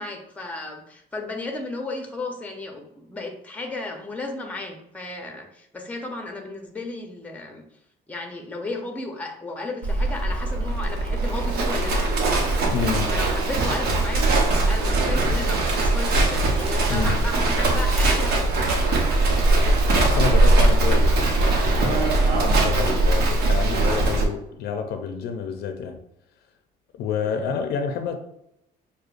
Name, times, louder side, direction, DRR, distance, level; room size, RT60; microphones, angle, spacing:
voice 1, 0.0-7.6 8.1-12.0 13.1-18.8 27.3-27.5, left 2 dB, 10° left, 2 dB, 0.8 m, -34 dB
Livestock farm animals working animals, 9.8-24.2, right 2 dB, 70° right, 0.9 m, -21 dB
voice 2, 12.7-13.1 16.9-17.2 19.9-26.0 26.9-28.2, left 6 dB, 75° left, 6 dB, 0.5 m, -29 dB
6.4 x 2.2 x 2.5 m, 0.79 s
cardioid pair, 110°, 17 cm